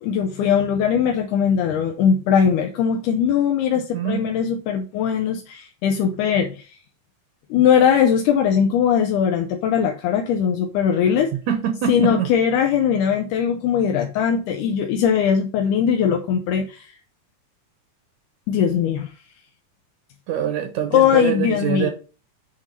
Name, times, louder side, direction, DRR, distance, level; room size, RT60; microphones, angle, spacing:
voice 1, 0.0-6.7 7.5-11.3 11.9-17.0 18.5-19.1 20.9-21.9, left 8 dB, 80° left, 3 dB, 2.2 m, -20 dB
voice 2, 3.9-4.3 11.5-12.3 20.3-21.9, right 10 dB, 70° right, 7 dB, 2.1 m, -24 dB
8.1 x 3.7 x 5.3 m, 0.34 s
omnidirectional pair, 3.7 m